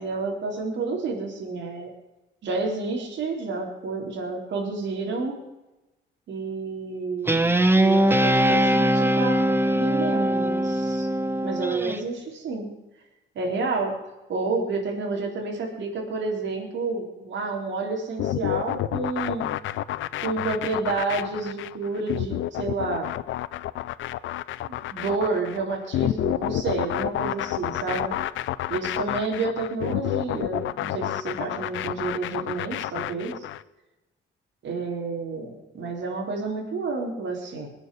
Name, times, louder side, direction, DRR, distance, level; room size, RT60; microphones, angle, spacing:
voice 1, 0.0-1.9 2.4-5.4 6.3-7.5 7.7-11.1 11.4-12.7 13.4-13.9 14.3-19.5 20.2-23.1 24.6-28.1 28.7-33.5 34.6-37.7, right 3 dB, 65° right, 0 dB, 3.9 m, -30 dB
Guitar, 7.3-12.0, right 1 dB, 10° right, 1.0 m, -21 dB
sound 1, 18.2-33.6, left 14 dB, 75° left, 0.6 m, -29 dB
21.0 x 7.2 x 6.5 m, 1.0 s
cardioid pair, 90°, 20 cm